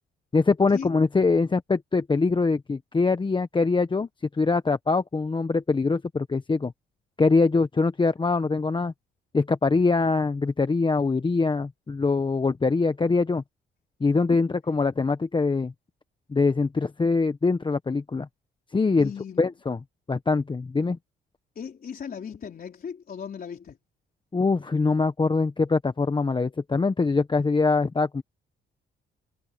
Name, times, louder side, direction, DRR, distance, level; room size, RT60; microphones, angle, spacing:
voice 1, 0.3-4.1 4.4-6.7 7.2-8.9 9.3-13.4 14.0-15.7 16.3-18.3 18.7-19.1 19.4-19.8 20.1-21.0 24.3-28.2, left 4 dB, 25° left, 1.1 m, -23 dB
voice 2, 19.0-19.4 21.6-23.8, left 7 dB, 50° left, 4.2 m, -37 dB
cardioid pair, 90°, 20 cm